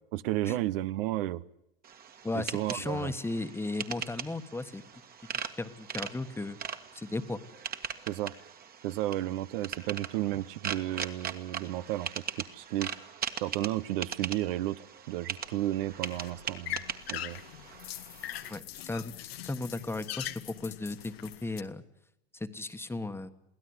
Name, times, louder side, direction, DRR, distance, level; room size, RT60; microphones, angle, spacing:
voice 1, 0.1-1.4 2.3-3.1 8.1-8.3 8.8-12.9 13.4-14.8 15.1-16.8 17.1-17.4, right 15 dB, 65° right, 15 dB, 0.9 m, -32 dB
sound 1, 1.8-18.6, right 7 dB, 30° right, 1.8 m, -40 dB
voice 2, 2.2-4.8 5.6-6.6 6.9-7.4 18.5-21.8 22.3-23.3, left 2 dB, 10° left, 9 dB, 1.4 m, -36 dB
sound 2, 15.4-21.6, left 14 dB, 80° left, 1.5 m, -42 dB
23.5 x 16.5 x 9.7 m, 0.84 s
hypercardioid pair, 110°, 30 cm